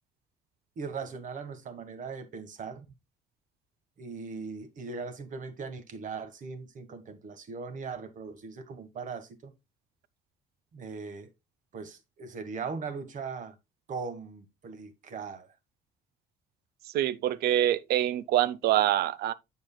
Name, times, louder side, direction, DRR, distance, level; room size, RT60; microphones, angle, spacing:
voice 1, 0.8-2.8 4.0-9.5 10.7-11.3 11.7-13.6 13.9-15.5, right 5 dB, 50° right, 1.4 m, -39 dB
voice 2, 16.9-19.3, right 12 dB, 70° right, 0.6 m, -25 dB
7.7 x 7.4 x 2.2 m
cardioid pair, 110°, 17 cm